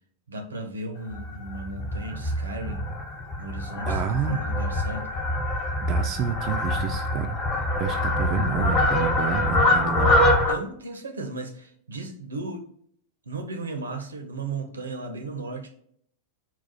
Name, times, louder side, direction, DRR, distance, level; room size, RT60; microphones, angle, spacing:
voice 1, 0.3-2.9 3.4-5.1 10.5-12.7 13.3-15.7, right 2 dB, 75° right, 5 dB, 0.6 m, -35 dB
Fowl, 1.1-10.5, left 1 dB, 30° left, 0.9 m, -24 dB
voice 2, 3.9-4.4 5.8-7.4 7.8-10.1, right 7 dB, 35° right, 5 dB, 0.3 m, -29 dB
4.1 x 2.4 x 3.9 m, 0.64 s
figure-of-eight pair, 90°, 0 cm